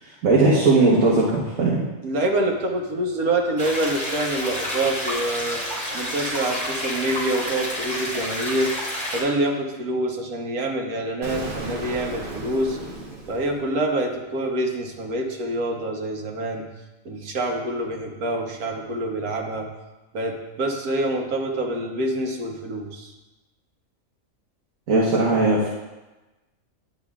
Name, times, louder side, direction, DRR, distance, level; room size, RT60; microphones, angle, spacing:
voice 1, 0.0-1.8 24.9-25.7, right 2 dB, 70° right, -5 dB, 1.5 m, -19 dB
voice 2, 2.0-5.6 5.9-8.7 9.1-12.8 13.3-16.6 17.0-19.7 20.1-23.1, right 1 dB, 90° right, 2 dB, 1.5 m, -26 dB
sound 1, 3.6-9.2, equal, 20° right, 2.7 m, -29 dB
Explosion, 11.2-14.1, right 1 dB, 40° right, 1.3 m, -35 dB
10.5 x 8.9 x 2.4 m, 1.1 s
omnidirectional pair, 1.5 m